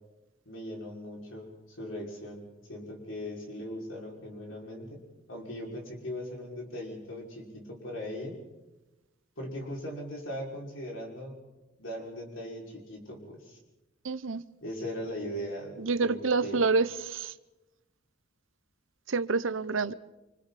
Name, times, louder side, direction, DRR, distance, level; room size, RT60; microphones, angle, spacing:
voice 1, 0.5-5.0 5.3-8.4 9.4-11.4 11.8-13.6 14.6-16.6, equal, 85° left, 6.0 m, -39 dB
voice 2, 14.0-14.4 15.8-17.3 19.1-19.9, right 4 dB, 85° right, 0.9 m, -28 dB
29.0 x 26.5 x 4.3 m
head